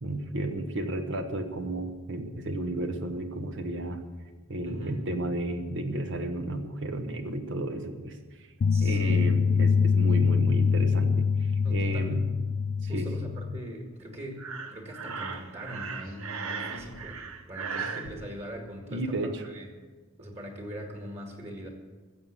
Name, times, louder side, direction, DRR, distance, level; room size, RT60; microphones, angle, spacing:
voice 1, 0.0-4.0 4.5-8.5 8.8-12.2 12.8-13.3 18.9-19.4, right 1 dB, 60° right, 6 dB, 1.2 m, -33 dB
voice 2, 4.6-5.0 8.7-9.4 11.6-12.3 12.9-17.2 17.5-19.7 20.2-21.7, equal, 30° right, 1 dB, 2.0 m, -41 dB
sound 1, 8.6-13.6, left 5 dB, 45° left, 0.3 m, -24 dB
Breathing, 14.4-18.1, right 5 dB, 80° right, 1.2 m, -37 dB
15.0 x 7.4 x 8.3 m, 1.4 s
head